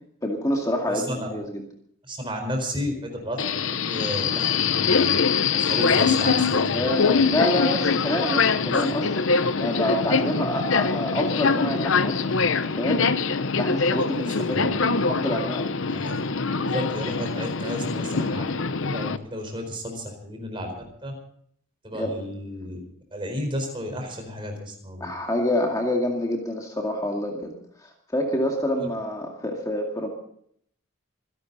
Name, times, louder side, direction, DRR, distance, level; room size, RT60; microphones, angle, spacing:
voice 1, 0.2-1.6 6.7-9.3 9.6-12.4 12.7-13.0 13.6-14.7 15.1-15.7 21.9-22.3 25.0-27.5 27.8-30.1, left 1 dB, 15° left, 0 dB, 2.2 m, -27 dB
voice 2, 0.9-1.3 2.0-5.2 5.5-7.4 8.6-8.8 14.2-14.7 15.9-16.2 16.6-18.5 18.8-21.1 21.8-22.8 23.1-25.1 28.8-28.9, equal, 25° right, 4 dB, 4.5 m, -33 dB
Subway metro underground, 3.4-19.2, left 5 dB, 70° left, 0.9 m, -23 dB
26.5 x 11.5 x 4.1 m, 0.65 s
head